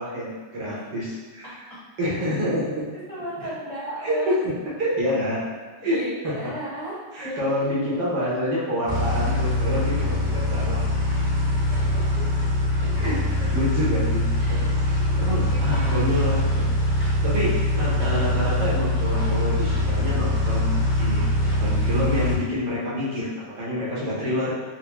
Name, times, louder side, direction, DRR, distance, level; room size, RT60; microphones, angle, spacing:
voice 1, 0.0-1.7 2.0-2.8 3.4-3.5 4.0-5.4 5.8-6.4 7.1-10.8 13.0-14.2 14.5-16.6 17.0-24.5, left 1 dB, 75° right, -7 dB, 1.5 m, -27 dB
voice 2, 3.1-4.4 5.8-6.9 7.2-7.4 7.9-8.0 11.9-12.3 14.4-14.7 15.0-16.3, equal, 25° left, -11 dB, 0.8 m, -35 dB
sound 1, 8.9-22.4, left 1 dB, 20° right, 0.5 m, -23 dB
4.5 x 2.1 x 2.9 m, 1.4 s
omnidirectional pair, 1.9 m